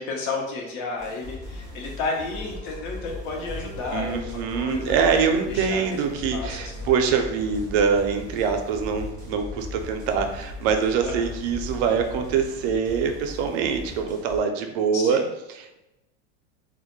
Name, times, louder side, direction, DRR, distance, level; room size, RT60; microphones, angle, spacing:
voice 1, 0.0-5.2 5.4-6.0 6.3-7.0 11.0-11.3 14.9-15.2, left 3 dB, 65° left, 0 dB, 0.8 m, -32 dB
sound 1, 1.0-14.4, left 1 dB, 10° left, 0.4 m, -40 dB
sound 2, 2.3-12.6, left 2 dB, 30° left, 0.8 m, -40 dB
voice 2, 3.9-15.2 15.5-15.8, right 6 dB, 60° right, 5 dB, 0.4 m, -24 dB
2.2 x 2.1 x 2.9 m, 0.92 s
supercardioid pair, 135°, 36 cm